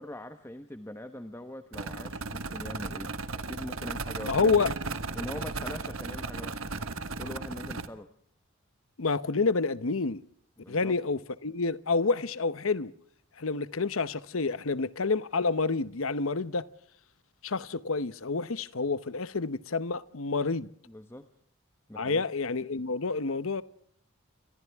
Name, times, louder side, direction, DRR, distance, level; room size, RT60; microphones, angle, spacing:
voice 1, 0.0-4.7 5.1-6.6 7.2-8.1 10.6-10.9 20.9-21.3 21.9-22.2, left 1 dB, 10° left, 1.1 m, -42 dB
sound 1, 1.7-7.9, right 3 dB, 70° right, 1.5 m, -36 dB
voice 2, 4.2-4.7 9.0-10.2 10.7-12.9 13.4-16.6 17.4-20.7 22.0-23.6, left 4 dB, 70° left, 0.9 m, -28 dB
29.0 x 25.0 x 3.6 m
head